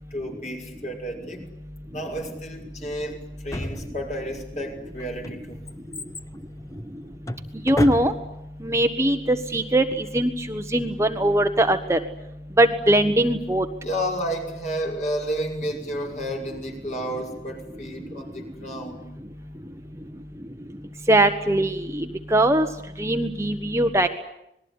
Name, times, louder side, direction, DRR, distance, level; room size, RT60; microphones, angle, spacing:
voice 1, 0.1-1.4 1.9-5.6 13.8-19.0, equal, 40° left, 3 dB, 5.9 m, -31 dB
Drawer open or close, 3.5-4.4 5.0-8.5 8.7-8.8, left 1 dB, 20° left, 1.2 m, -32 dB
voice 2, 7.6-8.1 8.6-12.0 12.6-13.6 21.1-22.7 23.0-24.1, right 1 dB, 15° right, 6 dB, 1.3 m, -21 dB
26.5 x 20.5 x 9.8 m, 0.82 s
head